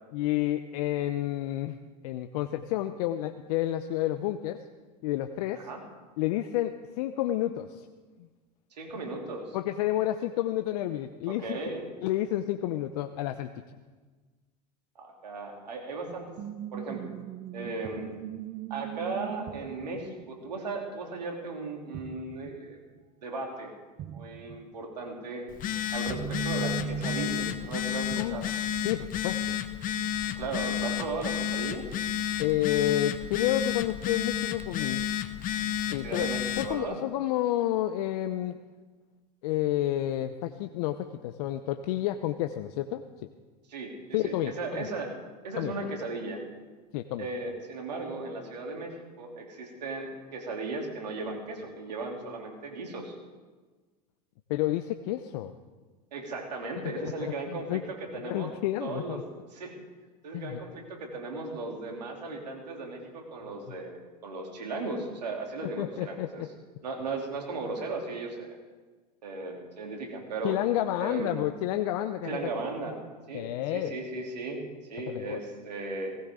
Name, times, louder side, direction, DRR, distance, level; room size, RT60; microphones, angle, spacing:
voice 1, 0.1-1.8 2.0-4.6 5.0-5.6 6.2-7.9 9.5-11.6 12.0-13.5 28.1-28.5 28.8-29.6 32.4-35.1 35.9-36.3 36.6-38.5 39.4-43.0 44.1-44.9 45.6-45.7 46.9-47.3 54.5-55.5 57.0-57.3 57.7-57.8 58.1-59.2 60.3-60.6 65.8-66.5 70.4-72.3 73.3-73.9 75.1-75.4, left 13 dB, 65° left, 8 dB, 0.8 m, -30 dB
voice 2, 8.7-9.6 11.3-11.8 14.9-16.3 16.7-17.1 17.5-18.1 18.7-22.8 23.2-23.7 24.1-25.4 25.9-28.5 30.2-31.8 35.9-37.0 43.7-45.1 45.4-46.4 47.2-53.1 56.1-58.5 58.8-59.2 59.5-59.7 60.2-66.5 66.8-68.6 69.2-70.5 71.0-71.4 72.2-72.9 73.3-73.4 73.7-74.6 74.9-76.2, right 3 dB, 90° right, 1 dB, 3.3 m, -36 dB
sound 1, 16.1-21.7 21.9-22.7 23.0-23.1 24.0-24.7 25.5-28.9 29.6-30.1, right 9 dB, 40° right, 0.7 m, -40 dB
Telephone, 25.5-36.8, left 10 dB, 40° left, 1.0 m, -31 dB
18.5 x 16.5 x 3.8 m, 1.3 s
hypercardioid pair, 90°, 21 cm